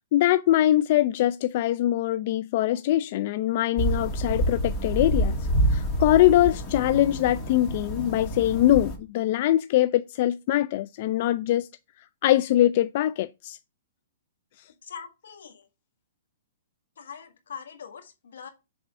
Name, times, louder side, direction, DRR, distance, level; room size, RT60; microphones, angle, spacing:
voice 1, 0.1-5.4 5.7-11.7 12.2-13.6, left 13 dB, 50° left, 0.3 m, -23 dB
sound 1, 3.8-9.0, right 1 dB, 20° left, 2.0 m, -27 dB
voice 2, 14.8-15.7 17.0-18.5, left 7 dB, 80° left, 1.7 m, -42 dB
6.9 x 3.6 x 5.4 m
hypercardioid pair, 145°, 0 cm